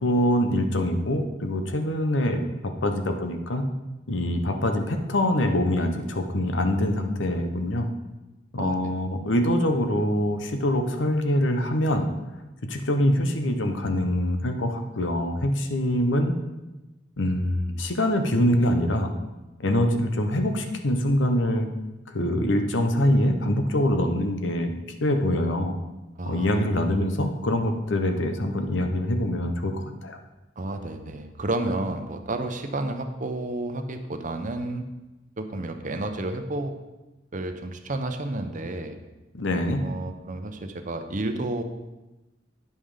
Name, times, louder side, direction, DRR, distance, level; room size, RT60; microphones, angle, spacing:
voice 1, 0.0-3.6 4.1-7.9 8.5-12.1 12.6-16.4 17.2-19.1 19.6-21.7 22.1-24.7 25.0-25.7 26.3-30.2 39.3-39.8, left 1 dB, 80° left, 6 dB, 0.9 m, -24 dB
voice 2, 26.2-26.7 30.6-34.9 35.4-36.7 37.3-39.0 39.8-41.6, right 2 dB, 45° right, 7 dB, 0.8 m, -31 dB
9.4 x 5.6 x 5.0 m, 1.1 s
head